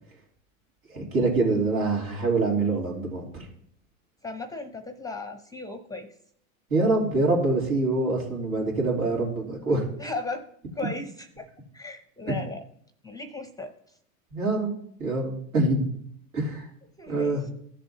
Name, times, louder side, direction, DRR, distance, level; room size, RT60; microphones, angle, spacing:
voice 1, 0.9-3.5 6.7-9.8 14.3-14.7 15.0-15.9 16.3-16.7 17.1-17.4, right 2 dB, 90° right, -2 dB, 3.3 m, -25 dB
voice 2, 4.2-6.1 10.0-10.5 10.8-11.5 11.7-12.6 13.0-13.7 17.0-17.5, left 3 dB, 10° left, 10 dB, 0.5 m, -36 dB
15.0 x 6.8 x 2.8 m, 0.66 s
hypercardioid pair, 105°, 42 cm